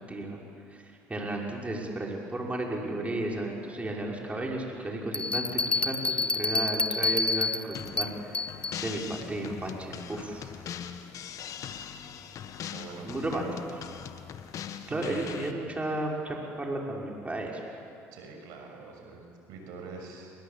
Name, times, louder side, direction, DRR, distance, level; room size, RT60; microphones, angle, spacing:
voice 1, 0.1-0.4 0.7-0.8 1.1-8.3 8.8-10.5 13.0-13.8 14.9-17.6, right 1 dB, 20° right, -1 dB, 5.9 m, -33 dB
Bell, 5.1-8.8, left 3 dB, 15° left, 0.9 m, -28 dB
sound 1, 7.7-15.5, left 8 dB, 55° left, 1.7 m, -41 dB
voice 2, 12.7-13.1 14.7-15.3 18.1-20.3, right 4 dB, 75° right, 2 dB, 6.6 m, -44 dB
28.5 x 24.0 x 8.6 m, 2.5 s
hypercardioid pair, 70°, 7 cm